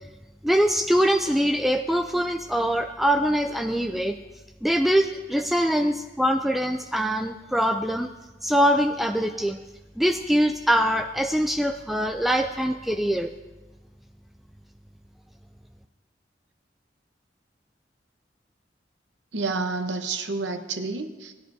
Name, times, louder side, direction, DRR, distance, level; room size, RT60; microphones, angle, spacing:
voice 1, 0.4-4.1 4.6-8.1 8.4-9.6 10.0-13.3, equal, ahead, 5 dB, 0.3 m, -23 dB
voice 2, 19.3-21.3, right 3 dB, 80° right, 7 dB, 0.9 m, -29 dB
19.5 x 11.0 x 2.7 m, 1.2 s
head